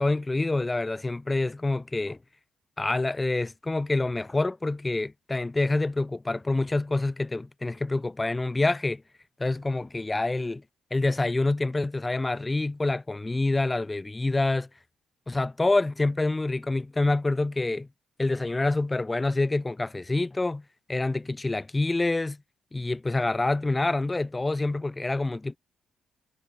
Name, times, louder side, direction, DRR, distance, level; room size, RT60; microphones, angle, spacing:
voice 1, 0.0-2.2 2.8-9.0 9.4-10.6 10.9-14.7 15.3-17.9 18.2-20.6 20.9-22.4 22.7-25.6, left 2 dB, 15° left, 4.1 m, -27 dB
cardioid pair, 95°, 0 cm